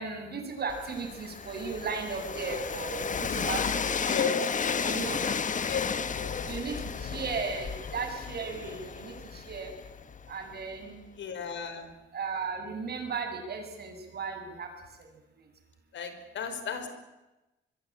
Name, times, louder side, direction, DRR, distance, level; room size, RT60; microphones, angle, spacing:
voice 1, 0.0-4.2 4.8-5.2 6.5-9.7 10.3-11.0 12.1-14.7, right 4 dB, 55° right, 5 dB, 7.6 m, -36 dB
Train, 0.7-10.5, left 6 dB, 40° left, 1.4 m, -33 dB
voice 2, 4.1-5.0 5.6-6.5 11.2-11.9 15.9-16.9, left 6 dB, 70° left, 8 dB, 5.1 m, -35 dB
25.5 x 22.0 x 8.9 m, 1.0 s
cardioid pair, 90°, 20 cm